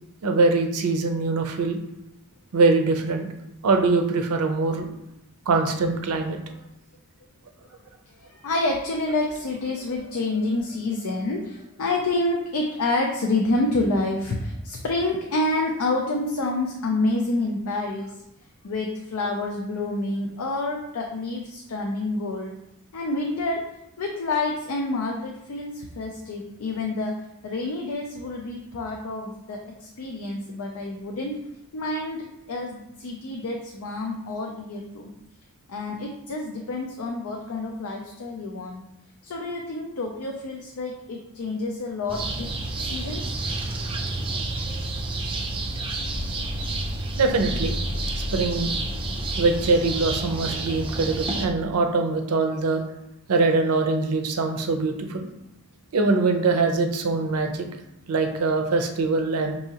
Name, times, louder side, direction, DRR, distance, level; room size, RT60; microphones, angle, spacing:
voice 1, 0.2-1.8 2.5-3.3 3.6-4.9 5.5-6.4 47.2-47.8 48.2-48.7 49.4-52.8 53.3-55.3 55.9-57.7 58.1-59.6, right 3 dB, 85° right, 5 dB, 0.5 m, -23 dB
voice 2, 8.2-18.1 18.6-22.6 22.9-23.7 24.0-27.2 27.4-31.5 31.7-35.1 35.7-38.8 39.2-42.5 42.8-43.3, left 2 dB, 75° left, 1 dB, 0.5 m, -28 dB
sound 1, 42.1-51.5, right 2 dB, 25° right, 0.3 m, -29 dB
4.7 x 2.7 x 2.8 m, 0.86 s
head